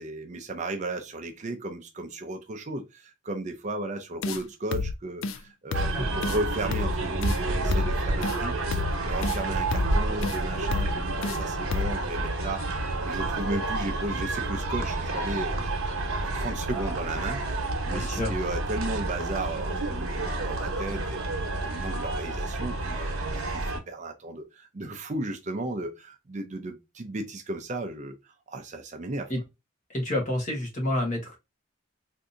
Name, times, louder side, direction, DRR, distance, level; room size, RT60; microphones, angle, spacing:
voice 1, 0.0-8.6 9.0-12.6 13.0-15.8 16.2-21.2 21.6-28.1 28.5-29.3, right 2 dB, 35° right, 0.5 m, -35 dB
sound 1, 4.2-4.4 4.7-4.9 5.2-5.4 5.7-5.9 6.2-6.4 6.7-6.9 7.2-7.4 7.7-7.9 8.2-8.4 8.7-8.9 9.2-9.4 9.7-9.9 10.2-10.4 10.7-10.9 11.2-11.4 11.7-11.9, left 5 dB, 70° left, 0.3 m, -30 dB
sound 2, 5.7-23.8, right 2 dB, 90° right, 1.0 m, -29 dB
voice 2, 17.9-18.3 29.3-29.4 29.9-31.4, left 1 dB, 35° left, 1.1 m, -29 dB
3.6 x 2.6 x 2.5 m
head